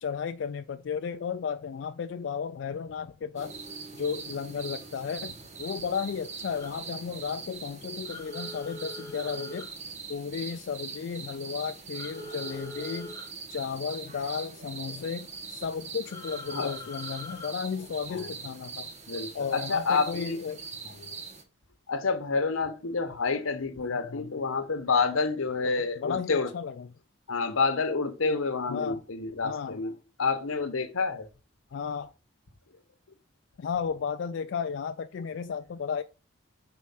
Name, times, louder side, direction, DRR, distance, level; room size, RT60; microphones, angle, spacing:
voice 1, 0.0-3.5 3.9-5.3 5.6-9.7 10.1-13.1 13.5-18.9 19.3-20.6 23.8-24.4 25.6-26.9 28.7-29.0 29.4-29.8 31.7-32.1 33.6-36.0, left 6 dB, 60° left, 0.3 m, -34 dB
sound 1, 3.4-21.4, right 5 dB, 35° right, 1.0 m, -42 dB
sound 2, 6.5-6.7 8.1-9.7 11.9-13.3 16.0-17.6, left 2 dB, 15° left, 1.0 m, -43 dB
voice 2, 19.1-20.4 20.8-21.1 21.9-26.5 27.3-29.9 30.2-31.3, left 4 dB, 85° left, 0.9 m, -28 dB
4.8 x 4.2 x 5.6 m
head